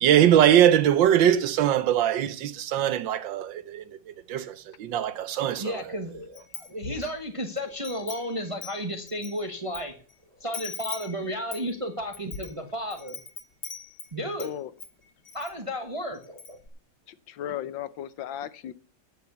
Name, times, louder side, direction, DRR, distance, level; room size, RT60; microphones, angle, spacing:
voice 1, 0.0-5.8, right 10 dB, 80° right, 1.6 m, -22 dB
voice 2, 5.6-9.9 10.4-13.2 14.1-14.5 15.3-16.6, equal, 20° right, 1.2 m, -33 dB
Wind chime, 6.4-7.2 7.6-9.8 10.1-10.2 10.5-14.5 14.8-15.5 15.9-16.0 16.2-16.7, left 5 dB, 50° left, 2.2 m, -41 dB
voice 3, 14.4-14.7 17.1-18.7, left 11 dB, 80° left, 1.6 m, -35 dB
9.8 x 7.1 x 8.2 m
omnidirectional pair, 2.0 m